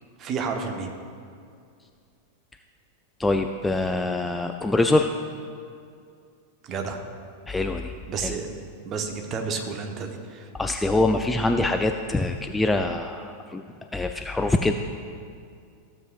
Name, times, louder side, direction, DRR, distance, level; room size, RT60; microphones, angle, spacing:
voice 1, 0.2-0.9 6.6-7.0 8.1-8.5 8.8-10.5, right 5 dB, 30° right, 3 dB, 1.1 m, -31 dB
voice 2, 3.2-5.1 7.5-7.9 8.2-8.3 10.6-13.6 13.9-14.7, left 2 dB, 10° left, 5 dB, 0.4 m, -24 dB
14.5 x 7.3 x 2.4 m, 2.3 s
figure-of-eight pair, 90°, 0 cm